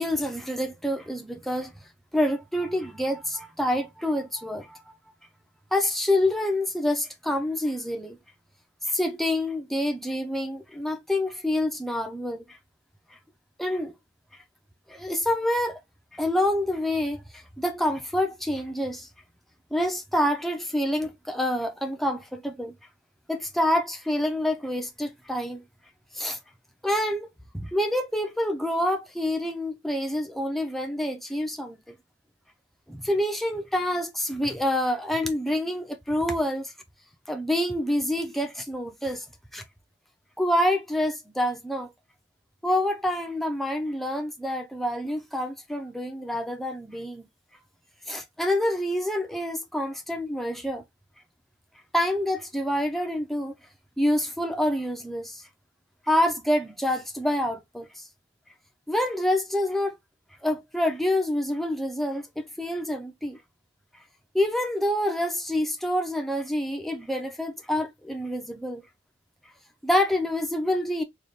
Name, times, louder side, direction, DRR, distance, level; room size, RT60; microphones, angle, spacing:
voice 1, 0.0-1.7 2.1-4.8 5.7-8.2 8.9-12.4 13.6-13.9 14.9-15.8 16.1-19.1 19.7-22.7 23.3-25.6 26.1-26.4 26.8-27.3 27.6-31.8 32.9-36.7 37.3-39.2 39.5-39.6 40.4-41.9 42.6-47.3 48.1-50.8 51.9-53.5 54.0-55.4 56.1-58.0 58.9-59.9 60.4-63.4 64.3-68.8 69.8-71.0, left 1 dB, ahead, 0.6 m, -27 dB
3.3 x 2.5 x 4.0 m
head